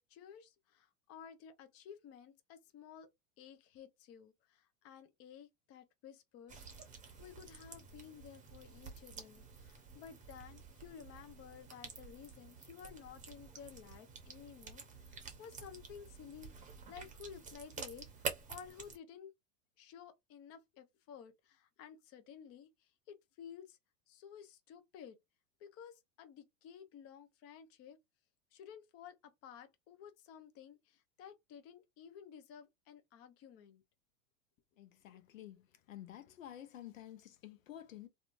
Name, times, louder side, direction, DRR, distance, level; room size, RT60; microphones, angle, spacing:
voice 1, 0.0-3.1 3.4-6.9 7.2-19.3 19.8-23.8 24.1-25.2 25.6-28.0 28.5-33.8 35.0-35.2, left 8 dB, 40° left, 0.7 m, -54 dB
sound 1, 6.5-19.0, right 5 dB, 20° right, 0.8 m, -49 dB
voice 2, 34.8-38.1, left 12 dB, 90° left, 0.6 m, -51 dB
2.7 x 2.4 x 2.5 m
hypercardioid pair, 100°, 38 cm